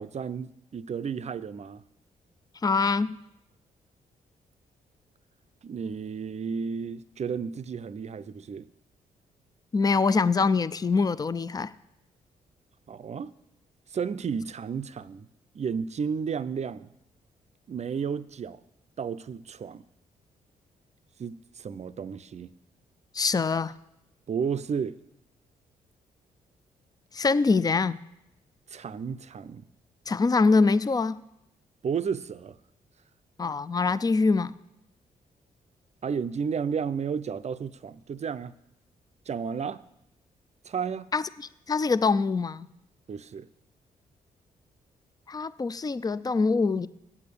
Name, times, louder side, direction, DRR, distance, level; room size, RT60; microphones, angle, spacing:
voice 1, 0.0-1.8 5.6-8.7 12.9-13.3 13.9-15.3 15.5-16.9 17.7-18.6 19.0-19.9 21.2-22.5 24.3-25.0 28.7-29.7 31.8-32.6 36.0-38.5 39.3-39.8 40.6-41.1 43.1-43.5, right 6 dB, 45° right, 14 dB, 0.5 m, -32 dB
voice 2, 2.6-3.2 9.7-11.7 23.1-23.7 27.1-28.0 30.1-31.2 33.4-34.6 41.1-42.7 45.3-46.9, left 4 dB, 25° left, 17 dB, 0.4 m, -24 dB
8.3 x 7.1 x 6.9 m, 0.83 s
supercardioid pair, 50°, 17 cm